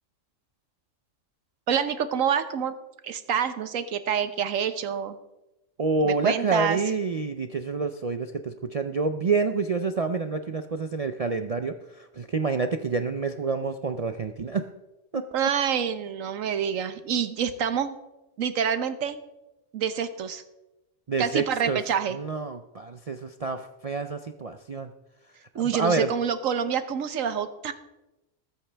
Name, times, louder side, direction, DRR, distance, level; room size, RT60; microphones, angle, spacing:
voice 1, 1.7-2.7 3.0-5.2 6.0-6.8 15.3-18.0 18.4-19.2 19.7-20.4 21.2-22.2 25.5-27.7, right 8 dB, 85° right, 11 dB, 1.3 m, -27 dB
voice 2, 5.8-14.7 15.1-15.2 21.1-21.8 22.1-24.9 25.6-26.1, right 4 dB, 55° right, 7 dB, 0.4 m, -28 dB
20.5 x 8.4 x 3.4 m, 0.97 s
omnidirectional pair, 1.3 m